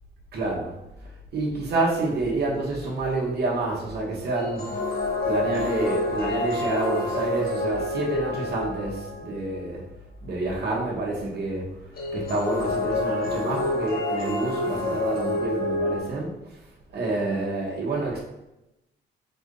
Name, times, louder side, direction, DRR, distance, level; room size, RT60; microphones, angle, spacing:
voice 1, 0.3-0.7 1.3-4.7 5.2-9.8 10.2-11.7 12.1-16.6 16.9-18.2, right 2 dB, 55° right, -3 dB, 1.2 m, -28 dB
sound 1, 4.3-9.4 11.9-16.0, left 2 dB, 50° left, 1.1 m, -28 dB
4.3 x 2.6 x 3.7 m, 0.91 s
cardioid pair, 90°, 20 cm